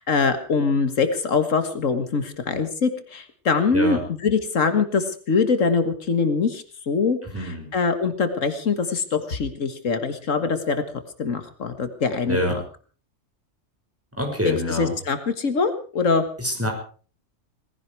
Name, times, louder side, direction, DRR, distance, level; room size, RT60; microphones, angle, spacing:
voice 1, 0.0-4.0 4.2-10.8 11.2-12.4 14.4-16.3, left 4 dB, 80° left, 9 dB, 1.9 m, -23 dB
voice 2, 7.3-7.7 12.3-12.6 14.1-14.9 16.4-16.7, equal, 10° right, 1 dB, 5.6 m, -25 dB
18.5 x 16.0 x 4.7 m, 0.41 s
omnidirectional pair, 1.3 m